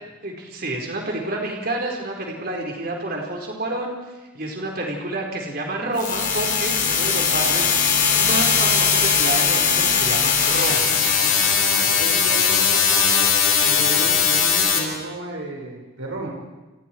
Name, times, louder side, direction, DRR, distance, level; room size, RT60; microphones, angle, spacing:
voice 1, 0.2-3.9 4.3-10.9, right 2 dB, 45° right, 0 dB, 4.6 m, -29 dB
Accidental buzz, 6.0-14.8, left 6 dB, 40° left, 4.8 m, -19 dB
voice 2, 11.2-13.3 13.6-16.3, right 2 dB, 75° right, -1 dB, 5.6 m, -33 dB
29.5 x 28.5 x 4.7 m, 1.1 s
head